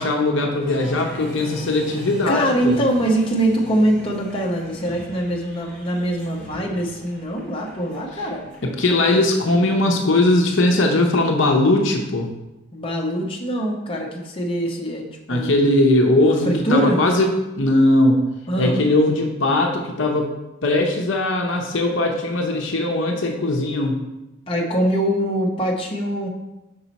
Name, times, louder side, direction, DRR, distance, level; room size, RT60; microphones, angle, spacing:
voice 1, 0.0-2.8 8.6-12.3 15.3-17.3 17.6-18.2 18.6-20.3 20.6-24.0, left 2 dB, 60° left, 2 dB, 0.8 m, -19 dB
Applause, 0.6-9.0, equal, 5° left, 1.8 m, -40 dB
voice 2, 2.3-8.4 12.7-15.6 16.2-17.0 18.5-18.8 24.5-26.3, right 1 dB, 25° left, -2 dB, 0.8 m, -23 dB
5.6 x 5.4 x 4.1 m, 0.97 s
head